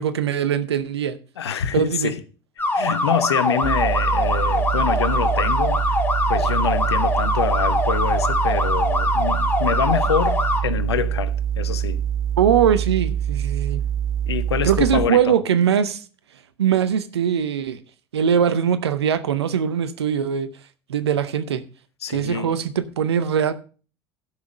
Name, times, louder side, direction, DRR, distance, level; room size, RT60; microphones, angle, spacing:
voice 1, 0.0-1.2 1.7-2.1 12.4-13.8 14.6-16.0 16.6-17.8 18.1-20.5 20.9-21.6 22.1-23.5, right 8 dB, 85° right, 0.7 m, -21 dB
voice 2, 1.4-2.2 2.7-6.0 6.3-12.0 14.3-15.3 22.0-22.5, left 8 dB, 85° left, 0.8 m, -26 dB
sound 1, 2.6-10.6, left 2 dB, 15° left, 2.3 m, -22 dB
sound 2, 3.6-15.1, right 9 dB, 65° right, 2.0 m, -25 dB
12.0 x 5.9 x 5.2 m
hypercardioid pair, 65°, 13 cm